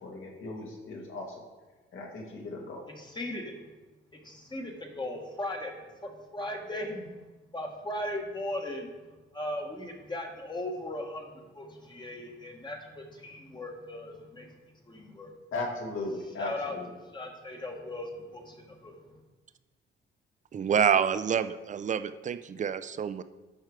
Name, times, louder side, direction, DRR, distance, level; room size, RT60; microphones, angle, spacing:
voice 1, 0.0-1.3 1.9-2.9 15.5-16.9, left 2 dB, 70° left, -1 dB, 2.1 m, -37 dB
voice 2, 3.0-3.6 4.1-7.1 7.5-8.9 9.3-14.5 14.9-15.3 16.4-16.7 17.1-19.0, left 1 dB, 20° left, 2 dB, 1.1 m, -38 dB
voice 3, 20.5-23.2, right 7 dB, 35° right, 12 dB, 0.4 m, -27 dB
12.0 x 4.6 x 4.8 m, 1.2 s
cardioid pair, 120°, 21 cm